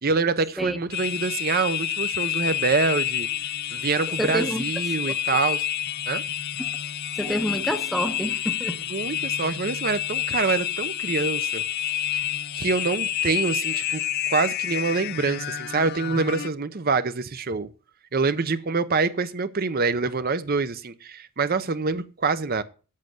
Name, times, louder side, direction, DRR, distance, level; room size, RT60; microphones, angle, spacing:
voice 1, 0.0-3.3 3.7-5.7 6.1-6.2 8.9-11.6 12.1-12.2 12.5-14.0 14.3-17.7 18.1-22.6, right 4 dB, 40° right, 0.6 m, -25 dB
sound 1, 0.9-16.5, left 11 dB, 45° left, 0.4 m, -29 dB
voice 2, 4.2-4.6 5.1-5.2 6.6-6.7 7.1-8.8, equal, ahead, 0.7 m, -28 dB
8.7 x 7.5 x 7.8 m
head